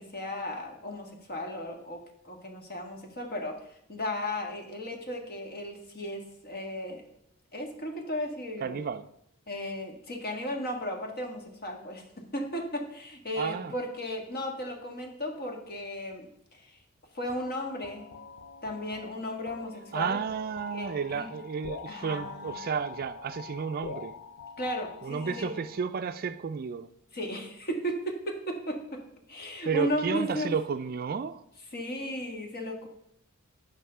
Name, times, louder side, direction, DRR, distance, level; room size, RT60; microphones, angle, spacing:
voice 1, 0.0-7.1 7.5-8.8 9.5-16.8 17.1-18.1 18.6-20.2 20.7-21.3 21.9-22.6 24.6-25.6 27.1-29.0 29.3-30.5 31.7-32.9, equal, 45° left, 2 dB, 1.6 m, -35 dB
voice 2, 8.6-9.1 13.4-13.7 19.9-24.1 25.0-26.9 29.6-31.4, right 6 dB, 45° right, 11 dB, 0.4 m, -32 dB
sound 1, 17.3-26.0, left 5 dB, 80° left, 0.5 m, -45 dB
9.3 x 5.5 x 5.5 m, 0.76 s
head